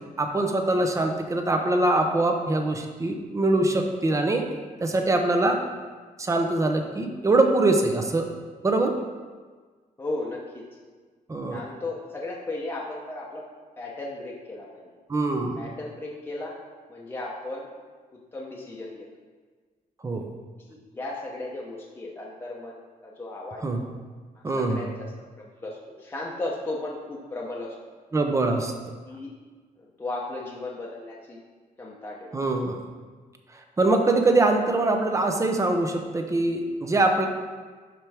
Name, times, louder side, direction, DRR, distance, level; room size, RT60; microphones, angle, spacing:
voice 1, 0.0-4.4 4.8-5.6 6.2-8.3 8.6-8.9 11.3-11.6 15.1-15.6 20.0-20.3 23.6-23.8 24.4-24.9 28.1-28.7 32.3-32.8 33.8-37.3, right 2 dB, 20° right, 4 dB, 0.7 m, -23 dB
voice 2, 10.0-10.7 11.5-13.4 13.8-14.9 15.6-16.5 16.9-17.7 18.3-19.1 20.7-23.7 24.4-25.1 25.4-27.7 29.1-29.3 29.8-31.4 31.8-32.3, left 2 dB, 15° left, -4 dB, 0.8 m, -35 dB
11.5 x 4.5 x 3.4 m, 1.4 s
wide cardioid pair, 175°, 15 cm